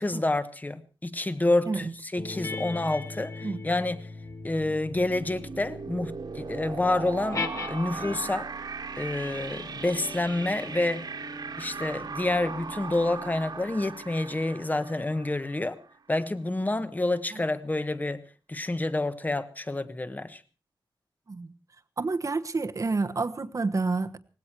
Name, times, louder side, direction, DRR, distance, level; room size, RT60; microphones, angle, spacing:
voice 1, 0.0-4.1 4.4-8.5 9.0-11.0 11.6-15.8 16.1-18.2 18.5-20.4, left 2 dB, 20° left, 1.2 m, -28 dB
sound 1, 2.2-8.6 9.3-14.2, left 3 dB, 40° left, 1.5 m, -40 dB
sound 2, 4.3-16.0, right 5 dB, 55° right, 2.0 m, -39 dB
voice 2, 22.0-24.2, right 3 dB, 40° right, 1.2 m, -29 dB
19.0 x 16.5 x 4.5 m
wide cardioid pair, 110°, 8 cm